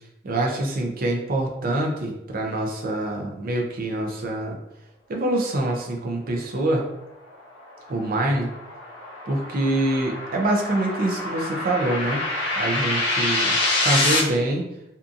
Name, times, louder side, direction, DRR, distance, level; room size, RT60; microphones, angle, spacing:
voice 1, 0.2-4.6 5.1-6.8 7.9-8.5 9.3-12.2 12.6-14.7, right 1 dB, 45° right, 1 dB, 0.5 m, -25 dB
sound 1, 7.3-14.2, left 2 dB, 60° left, 0.6 m, -26 dB
2.6 x 2.4 x 2.5 m, 0.89 s
head